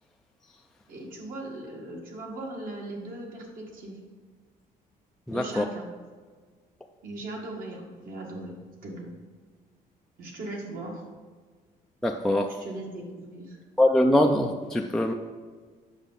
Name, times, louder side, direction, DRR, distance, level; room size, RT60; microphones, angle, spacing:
voice 1, 0.9-4.0 5.3-5.9 7.0-9.1 10.2-11.0 12.5-13.6, right 2 dB, 60° right, -1 dB, 1.8 m, -39 dB
voice 2, 5.3-5.7 12.0-12.5 13.8-15.1, left 1 dB, 5° left, 2 dB, 0.3 m, -23 dB
8.2 x 6.0 x 4.0 m, 1.5 s
cardioid pair, 145°, 16 cm